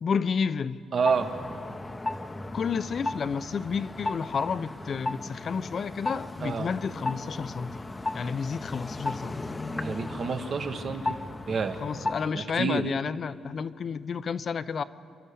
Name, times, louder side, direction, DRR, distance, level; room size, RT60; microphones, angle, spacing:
voice 1, 0.0-0.8 2.5-7.8 8.1-9.4 11.8-14.8, left 6 dB, 50° left, 0.7 m, -31 dB
voice 2, 0.9-1.3 6.4-6.7 9.7-11.2 11.5-11.8 12.3-12.9, right 5 dB, 55° right, 1.6 m, -28 dB
sound 1, 1.0-12.4, left 2 dB, 20° left, 0.8 m, -35 dB
29.0 x 12.0 x 8.5 m
cardioid pair, 90°, 0 cm